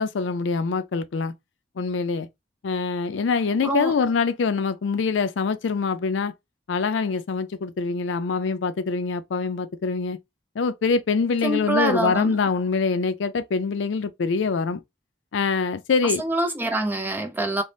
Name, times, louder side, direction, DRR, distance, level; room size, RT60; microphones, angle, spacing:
voice 1, 0.0-1.3 1.8-2.3 2.6-6.3 6.7-10.2 10.6-14.8 15.3-16.2, left 4 dB, 75° left, 0.4 m, -24 dB
voice 2, 3.6-3.9 11.4-12.3 16.2-17.6, right 2 dB, 10° right, 0.4 m, -25 dB
3.3 x 2.0 x 2.6 m
head